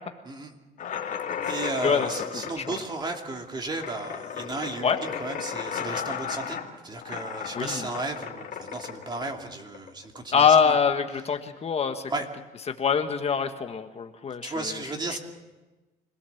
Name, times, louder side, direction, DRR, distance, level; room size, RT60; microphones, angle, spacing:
sound 1, 0.8-10.2, left 7 dB, 55° left, 2.5 m, -34 dB
voice 1, 1.4-6.6 6.8-10.8 12.1-12.3 14.4-15.2, right 3 dB, 25° right, 3 dB, 2.6 m, -34 dB
voice 2, 7.5-7.9 10.3-12.0 12.7-14.8, left 6 dB, 40° left, 7 dB, 1.5 m, -24 dB
25.0 x 17.5 x 7.2 m, 1.2 s
cardioid pair, 110°, 17 cm